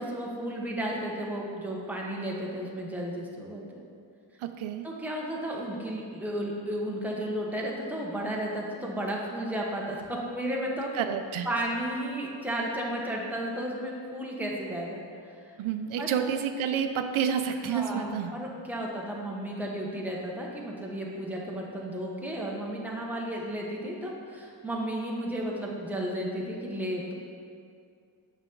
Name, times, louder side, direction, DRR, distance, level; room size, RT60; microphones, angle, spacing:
voice 1, 0.0-3.8 4.8-10.9 11.4-15.0 15.3-15.5 16.0-16.1 17.7-27.1, right 1 dB, 5° right, -3 dB, 1.0 m, -33 dB
voice 2, 4.4-4.9 10.9-11.5 15.6-18.4, right 8 dB, 90° right, 7 dB, 0.6 m, -29 dB
9.0 x 5.7 x 3.8 m, 2.3 s
wide cardioid pair, 145°, 47 cm